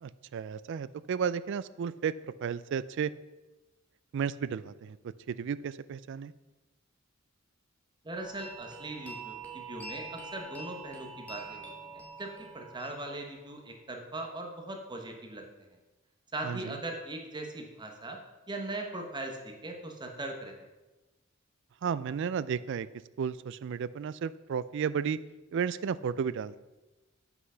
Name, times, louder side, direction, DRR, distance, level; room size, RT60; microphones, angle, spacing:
voice 1, 0.0-2.1 2.4-3.1 4.1-5.0 5.3-6.3 16.4-16.8 21.8-22.9 23.2-25.2 25.5-26.6, right 7 dB, 60° right, 17 dB, 0.3 m, -33 dB
voice 2, 8.0-15.4 16.3-18.2 18.5-20.5, right 2 dB, 20° right, 3 dB, 1.0 m, -40 dB
sound 1, 8.1-13.8, right 4 dB, 5° left, 1.3 m, -45 dB
7.9 x 6.0 x 5.5 m, 1.1 s
head